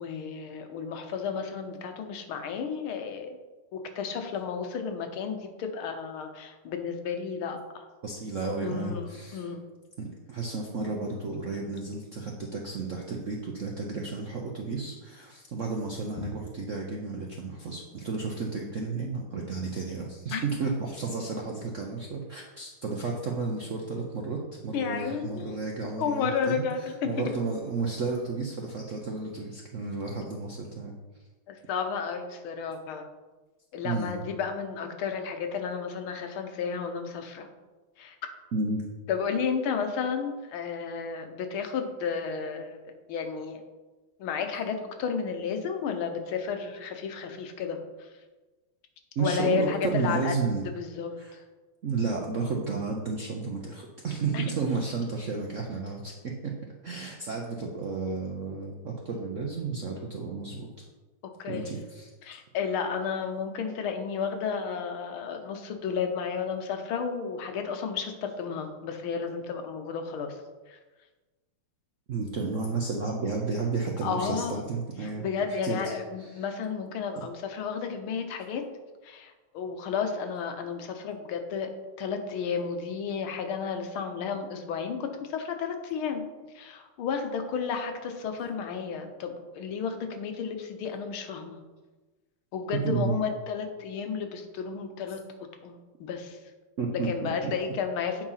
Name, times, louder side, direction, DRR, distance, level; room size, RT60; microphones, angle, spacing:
voice 1, 0.0-3.4 3.7-7.9 8.6-9.6 20.3-20.4 24.7-25.6 26.0-27.3 31.5-33.1 33.7-37.5 38.0-38.2 39.1-42.8 43.1-43.6 44.2-48.1 49.2-50.4 50.8-51.5 54.3-54.5 61.2-61.8 62.2-70.4 70.7-70.8 74.0-74.6 75.0-78.6 79.0-86.2 86.5-91.6 92.5-95.2 95.6-96.4 97.0-98.2, left 6 dB, 75° left, 6 dB, 1.7 m, -32 dB
voice 2, 8.0-9.5 10.0-26.7 27.0-30.9 33.8-34.1 38.5-38.8 49.2-50.6 51.2-51.3 51.8-56.5 56.8-60.7 61.5-62.4 72.1-75.8 76.3-76.4 77.2-77.3 87.3-87.5 87.9-88.0 88.5-88.6 92.8-93.2 96.8-97.5, right 4 dB, 65° right, 0 dB, 0.7 m, -32 dB
8.3 x 4.8 x 5.6 m, 1.2 s
omnidirectional pair, 2.4 m